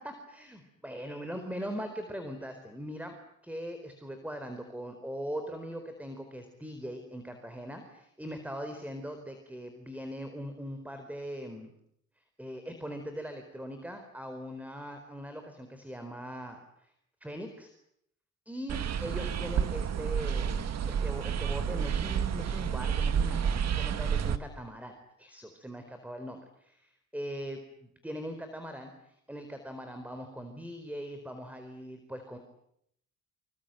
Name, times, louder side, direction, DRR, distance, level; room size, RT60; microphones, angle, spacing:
voice 1, 0.0-3.1 3.4-11.7 12.4-16.9 17.2-17.7 18.5-32.4, equal, 5° right, 7 dB, 4.3 m, -41 dB
sound 1, 18.7-24.4, right 7 dB, 60° right, 1.8 m, -30 dB
27.0 x 24.5 x 9.2 m, 0.75 s
cardioid pair, 90°, 30 cm